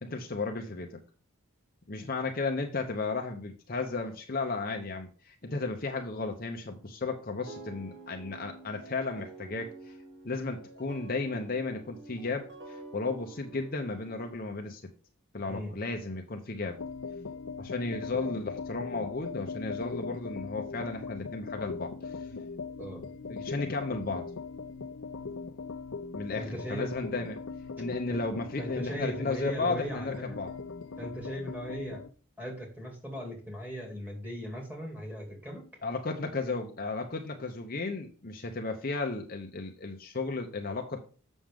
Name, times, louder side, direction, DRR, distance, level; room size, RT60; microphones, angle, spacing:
voice 1, 0.0-1.0 1.9-10.0 10.2-14.8 15.3-16.8 17.6-22.3 23.3-24.2 26.1-27.4 27.8-30.5 35.8-41.0, left 3 dB, 40° left, 3 dB, 0.8 m, -34 dB
sound 1, 7.5-14.3, right 3 dB, 50° right, 1.6 m, -48 dB
sound 2, 16.8-32.1, left 4 dB, 70° left, 0.7 m, -40 dB
voice 2, 26.4-26.9 28.1-28.2 28.6-30.4 31.0-32.0 32.4-35.7, equal, 10° right, 0 dB, 2.4 m, -38 dB
7.4 x 6.3 x 3.5 m, 0.38 s
head